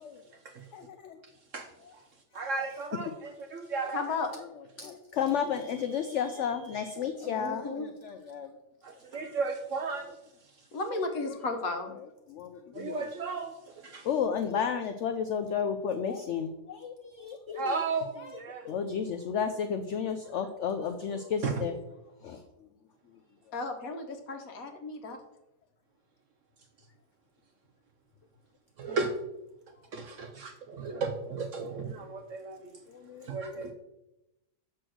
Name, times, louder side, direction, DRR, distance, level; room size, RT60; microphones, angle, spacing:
voice 1, 0.7-1.2 4.8-8.5 12.3-13.0 14.0-17.7 18.6-21.8 22.2-22.4 32.9-33.3, left 7 dB, 75° left, 7 dB, 0.6 m, -32 dB
voice 2, 1.5-2.0 2.3-4.2 8.8-10.1 10.4-10.6 12.7-14.1 17.5-18.7 21.4-21.6 28.8-29.1 29.9-32.7 33.2-33.7, right 4 dB, 65° right, 5 dB, 0.8 m, -34 dB
voice 3, 3.9-4.3 7.2-7.8 10.7-11.9 23.5-25.2, left 3 dB, 60° left, 6 dB, 1.3 m, -34 dB
6.2 x 4.4 x 6.2 m, 0.92 s
omnidirectional pair, 1.8 m